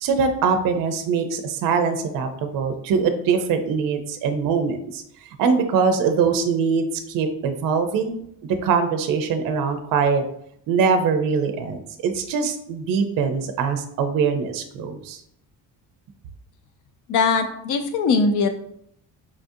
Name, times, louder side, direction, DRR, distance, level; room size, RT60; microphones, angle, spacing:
voice 1, 0.0-5.0 5.4-8.2 8.6-10.2 10.7-15.2, right 5 dB, 60° right, 7 dB, 0.5 m, -22 dB
voice 2, 17.1-18.5, left 4 dB, 50° left, 8 dB, 0.5 m, -20 dB
4.8 x 2.4 x 2.6 m, 0.72 s
cardioid pair, 165°, 39 cm